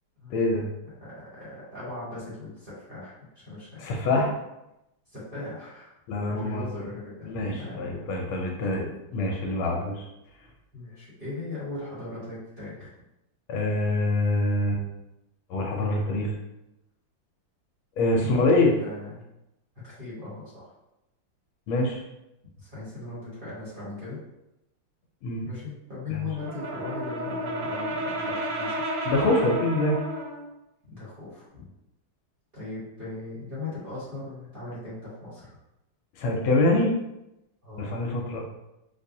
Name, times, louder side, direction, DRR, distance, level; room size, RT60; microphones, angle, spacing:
voice 1, 0.3-0.7 3.8-4.3 6.1-6.7 7.3-8.9 9.1-10.1 13.5-14.8 15.5-16.4 18.0-18.8 21.7-22.0 25.2-25.5 26.1-26.2 29.1-30.0 36.2-36.9 37.8-38.4, left 2 dB, 75° left, 0 dB, 1.4 m, -25 dB
voice 2, 1.0-3.8 5.1-6.0 6.3-7.9 10.7-12.9 18.1-19.2 19.8-20.7 22.6-24.2 25.4-28.7 30.9-31.6 32.5-35.6 37.6-38.2, left 3 dB, 25° right, -10 dB, 1.4 m, -39 dB
Brass instrument, 26.3-30.5, right 1 dB, 70° right, 1.3 m, -31 dB
4.2 x 2.7 x 2.6 m, 0.91 s
omnidirectional pair, 2.4 m